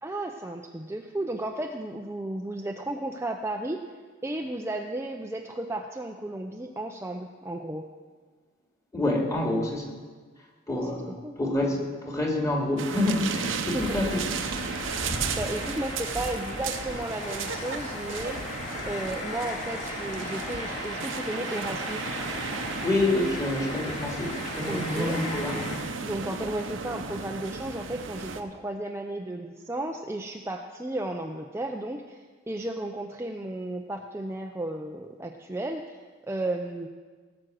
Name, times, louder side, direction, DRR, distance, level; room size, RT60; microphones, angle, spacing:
voice 1, 0.0-3.8 4.2-7.9 10.8-10.9 11.2-11.4 13.7-14.0 15.3-18.4 18.9-22.2 24.7-25.2 26.0-36.0 36.3-36.9, right 1 dB, 15° right, 3 dB, 0.6 m, -34 dB
voice 2, 8.9-9.9 10.7-14.2 22.8-25.5, left 1 dB, 15° left, 0 dB, 2.4 m, -27 dB
sound 1, 12.8-28.4, right 5 dB, 80° right, 0.9 m, -35 dB
sound 2, 13.8-25.8, left 2 dB, 40° left, 2.9 m, -37 dB
18.5 x 6.2 x 7.8 m, 1.5 s
head